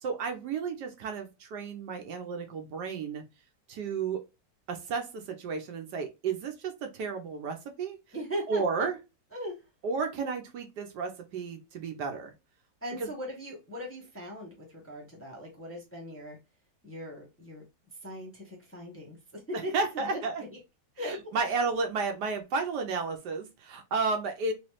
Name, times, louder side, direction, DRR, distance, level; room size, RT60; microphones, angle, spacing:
voice 1, 0.0-3.2 3.7-4.2 4.7-8.0 8.5-9.0 9.8-12.3 13.0-13.1 19.7-20.4 21.0-24.5, right 4 dB, 70° right, 5 dB, 1.2 m, -32 dB
voice 2, 8.1-8.9 9.3-9.6 10.1-10.3 12.8-16.4 16.8-17.6 18.0-19.7 20.0-20.2 20.5-20.6 21.0-21.4, equal, 10° left, -3 dB, 0.8 m, -39 dB
3.2 x 3.0 x 3.1 m, 0.26 s
omnidirectional pair, 1.9 m